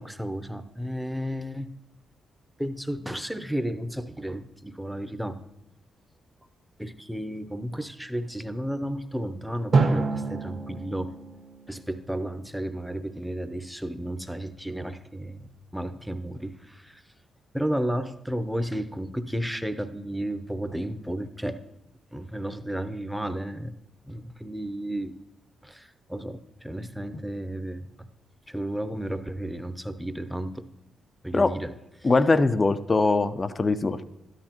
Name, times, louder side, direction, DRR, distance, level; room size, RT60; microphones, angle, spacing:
voice 1, 0.0-1.7 2.6-5.4 6.8-11.1 11.7-17.0 17.5-21.6 22.1-23.7 24.0-25.2 25.6-28.1 28.5-30.7 31.2-32.1, right 1 dB, 5° right, 10 dB, 0.7 m, -33 dB
Drum, 9.7-12.6, right 4 dB, 60° right, 1.5 m, -27 dB
voice 2, 32.0-34.1, left 3 dB, 35° left, 12 dB, 0.6 m, -22 dB
12.5 x 11.0 x 3.0 m, 0.86 s
supercardioid pair, 50°, 0 cm